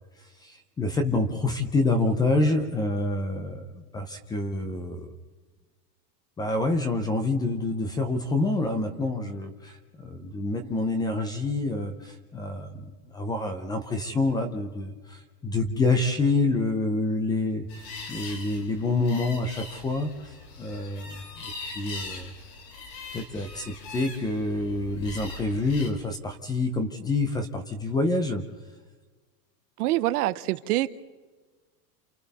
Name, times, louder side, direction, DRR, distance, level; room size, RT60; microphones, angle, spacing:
voice 1, 0.4-5.1 6.4-9.8 10.0-22.3 23.1-28.4, left 2 dB, 10° left, 0.6 m, -27 dB
sound 1, 17.7-25.9, left 3 dB, 85° left, 4.4 m, -41 dB
voice 2, 29.8-30.9, right 16 dB, 65° right, 0.9 m, -25 dB
29.0 x 28.0 x 4.1 m
supercardioid pair, 175°, 48 cm